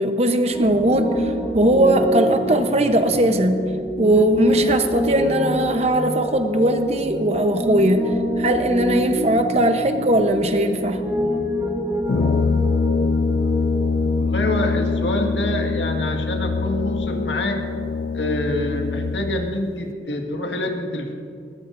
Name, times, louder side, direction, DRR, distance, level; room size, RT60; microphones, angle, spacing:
voice 1, 0.0-3.6 4.0-8.1 8.4-11.0, right 1 dB, 35° right, 6 dB, 1.0 m, -19 dB
Piano, 0.5-14.2, equal, 15° right, 1.6 m, -27 dB
Brass instrument, 12.1-19.6, left 4 dB, 55° left, 0.3 m, -23 dB
voice 2, 14.2-17.6 18.1-21.1, left 1 dB, 85° left, 2 dB, 2.0 m, -26 dB
21.5 x 19.0 x 2.7 m, 2.5 s
head